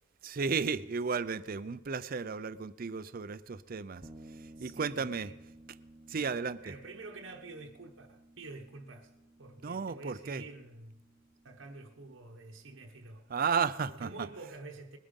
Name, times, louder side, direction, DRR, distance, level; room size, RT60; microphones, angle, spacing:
voice 1, 0.2-4.0 4.6-5.3 6.1-6.6 9.6-10.4 13.3-14.3, right 5 dB, 40° right, 0.5 m, -33 dB
sound 1, 4.0-13.5, right 1 dB, 20° right, 0.9 m, -57 dB
voice 2, 4.5-5.4 6.1-9.1 9.4-11.0 11.4-13.3 13.9-15.0, right 3 dB, 60° right, 1.0 m, -48 dB
20.5 x 8.9 x 5.3 m
head